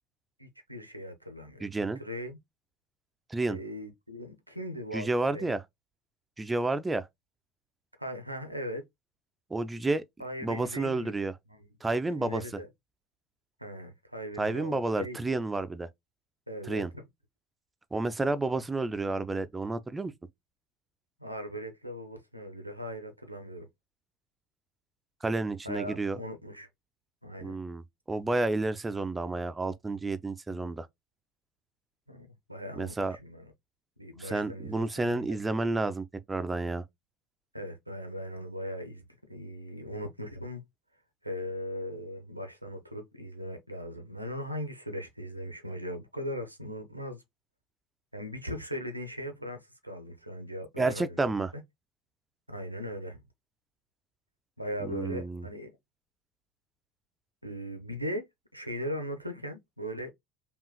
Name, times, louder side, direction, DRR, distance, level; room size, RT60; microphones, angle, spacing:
voice 1, 0.4-1.7 2.0-2.4 3.5-5.6 8.0-8.8 10.2-11.2 11.5-11.7 12.2-12.7 13.6-15.4 16.5-17.0 21.2-23.7 25.6-26.7 27.2-27.6 32.1-33.4 34.0-35.3 37.5-40.6 41.2-47.2 48.1-51.6 52.5-53.2 54.6-55.7 57.4-58.3 58.5-60.1, equal, 90° right, 0.7 m, -39 dB
voice 2, 1.6-2.0 3.3-3.6 4.9-5.6 6.4-7.1 9.5-10.0 10.4-11.4 11.8-12.6 14.4-15.9 16.6-16.9 17.9-20.1 25.2-26.2 27.4-30.9 32.8-33.2 34.2-36.8 50.8-51.5 54.8-55.5, right 2 dB, 15° right, 0.5 m, -30 dB
5.4 x 2.4 x 2.2 m
figure-of-eight pair, 70°, 0 cm